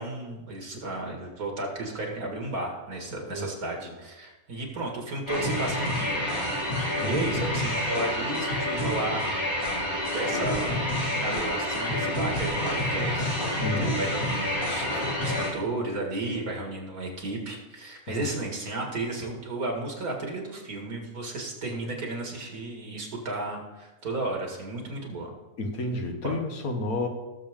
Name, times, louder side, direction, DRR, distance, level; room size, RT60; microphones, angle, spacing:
voice 1, 0.0-6.2 7.0-9.2 10.0-25.3 26.2-26.4, right 2 dB, 75° right, 0 dB, 2.5 m, -34 dB
sound 1, 5.3-15.5, left 1 dB, 45° left, 2.9 m, -28 dB
voice 2, 13.6-14.0 18.1-18.2 25.6-27.1, left 2 dB, 75° left, 4 dB, 1.7 m, -31 dB
16.5 x 7.2 x 3.7 m, 1.1 s
omnidirectional pair, 1.5 m